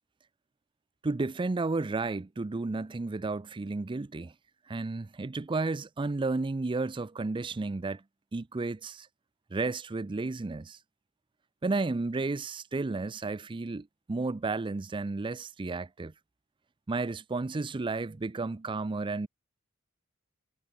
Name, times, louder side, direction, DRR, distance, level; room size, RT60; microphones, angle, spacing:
voice 1, 1.0-4.3 4.7-8.0 8.3-9.1 9.5-10.8 11.6-16.1 16.9-19.3, right 3 dB, 25° right, 0.4 m, -32 dB
head